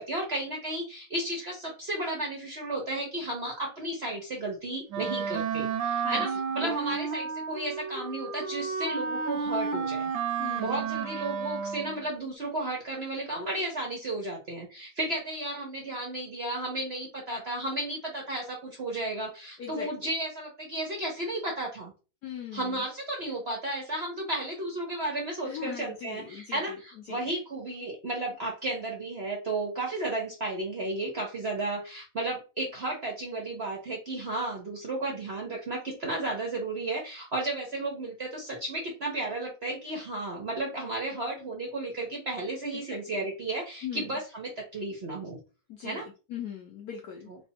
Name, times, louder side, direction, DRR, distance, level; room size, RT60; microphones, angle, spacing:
voice 1, 0.0-6.3 6.5-10.1 10.6-21.9 22.5-45.4 45.8-46.1 47.3-47.4, right 2 dB, 50° right, -1 dB, 0.7 m, -33 dB
Wind instrument woodwind instrument, 4.9-12.1, right 6 dB, 80° right, 1.3 m, -32 dB
voice 2, 6.0-7.0 10.4-10.8 19.6-19.9 22.2-22.8 25.4-26.8 27.1-27.2 42.7-43.3 43.8-44.2 45.7-47.3, left 8 dB, 70° left, 2 dB, 0.9 m, -40 dB
3.3 x 2.2 x 4.2 m, 0.33 s
omnidirectional pair, 2.1 m